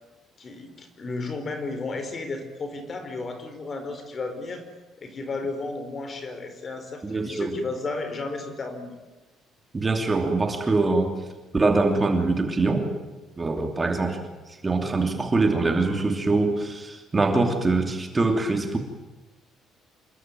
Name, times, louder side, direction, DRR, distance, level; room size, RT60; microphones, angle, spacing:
voice 1, 0.4-4.6 5.0-9.0, left 3 dB, 30° left, 8 dB, 4.7 m, -33 dB
voice 2, 7.0-7.5 9.7-11.1 11.5-12.9 13.4-14.2 14.6-18.8, right 3 dB, 20° right, 4 dB, 2.8 m, -23 dB
27.5 x 22.5 x 9.2 m, 1.2 s
cardioid pair, 155°, 0 cm